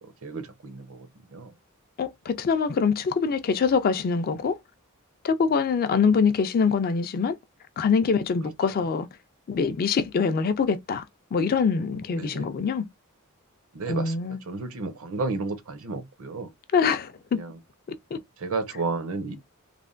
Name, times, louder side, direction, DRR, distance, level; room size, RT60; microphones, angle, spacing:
voice 1, 0.0-1.5 12.1-12.5 13.7-16.5 17.3-17.6 18.4-19.4, right 3 dB, 65° right, 0.6 m, -33 dB
voice 2, 2.0-4.6 5.2-7.3 7.8-9.1 9.5-11.0 11.3-12.8 13.9-14.4 16.7-17.4 18.1-18.2, left 5 dB, 40° left, 0.3 m, -24 dB
3.2 x 2.1 x 2.5 m
head